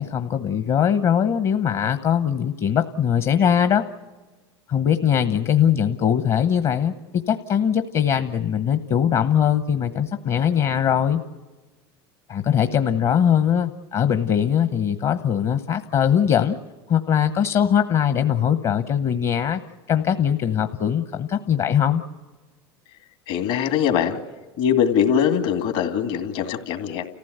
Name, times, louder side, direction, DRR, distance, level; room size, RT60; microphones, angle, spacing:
voice 1, 0.0-3.8 4.7-11.2 12.3-16.6 16.9-19.6 19.9-22.0, left 8 dB, 45° left, 9 dB, 1.0 m, -21 dB
voice 2, 23.3-24.2 24.6-27.1, left 8 dB, 65° left, 6 dB, 2.4 m, -22 dB
29.5 x 15.0 x 8.1 m, 1.3 s
hypercardioid pair, 90°, 13 cm